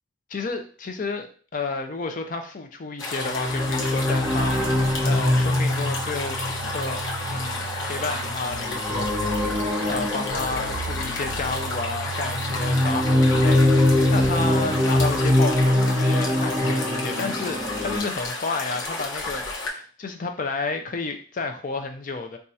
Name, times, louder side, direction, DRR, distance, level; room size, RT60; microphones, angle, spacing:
voice 1, 0.3-22.4, left 3 dB, 40° left, 6 dB, 0.4 m, -31 dB
sound 1, 3.0-19.7, left 3 dB, 70° left, 0.8 m, -31 dB
sound 2, 3.2-11.7 12.3-18.0, left 1 dB, 20° right, 0.7 m, -23 dB
Telephone, 5.1-9.1 10.3-16.0, right 5 dB, 65° right, 0.4 m, -37 dB
2.7 x 2.3 x 4.1 m, 0.42 s
head